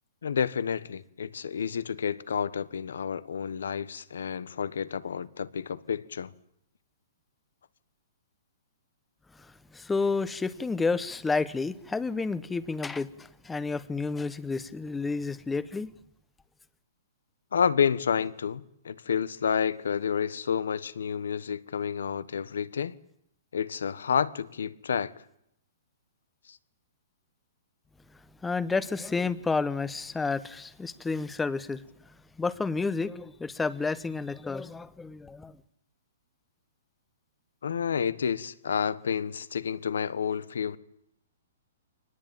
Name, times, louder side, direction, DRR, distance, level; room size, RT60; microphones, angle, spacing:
voice 1, 0.2-6.3 17.5-23.0 23.5-25.1 26.5-26.6 37.6-40.8, left 7 dB, 85° left, 1.4 m, -30 dB
voice 2, 9.3-15.9 28.4-35.6, left 4 dB, 10° left, 1.0 m, -31 dB
24.5 x 19.5 x 9.2 m
hypercardioid pair, 150°, 0 cm